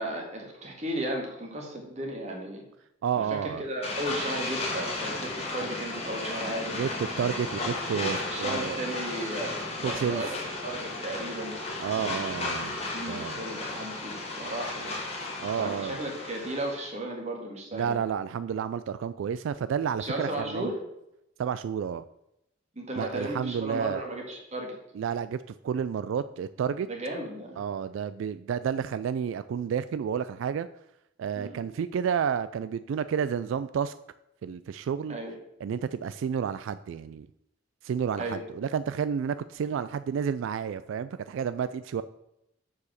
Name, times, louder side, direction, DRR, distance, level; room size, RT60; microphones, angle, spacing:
voice 1, 0.0-2.6 3.2-6.8 7.8-10.3 10.6-12.5 12.9-15.0 15.6-18.0 20.0-20.7 22.8-24.8 26.9-27.6 31.4-31.6 35.1-35.3 38.1-38.4, right 1 dB, 35° right, 1 dB, 1.8 m, -35 dB
voice 2, 3.0-3.6 6.8-8.8 9.8-10.2 11.8-12.8 13.1-13.4 15.4-16.0 17.7-20.7 21.4-22.0 23.0-24.0 25.0-26.9 27.6-30.7 31.2-34.0 34.4-35.2 35.6-37.3 37.8-42.0, right 7 dB, 85° right, 14 dB, 0.3 m, -30 dB
sound 1, 3.8-16.9, left 2 dB, 30° left, 1.5 m, -34 dB
7.0 x 4.8 x 6.4 m, 0.84 s
head